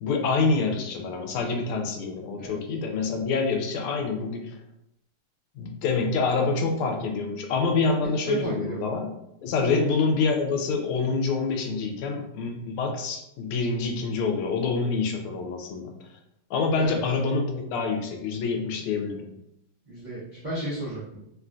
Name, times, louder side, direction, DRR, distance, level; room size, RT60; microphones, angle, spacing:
voice 1, 0.0-4.6 5.5-9.1 9.4-15.9 16.5-19.3, left 4 dB, 85° left, 3 dB, 1.5 m, -26 dB
voice 2, 7.8-8.9 9.6-9.8 16.9-17.0 19.9-21.2, right 1 dB, 80° right, -11 dB, 0.4 m, -32 dB
3.6 x 2.2 x 2.5 m, 0.81 s
omnidirectional pair, 2.3 m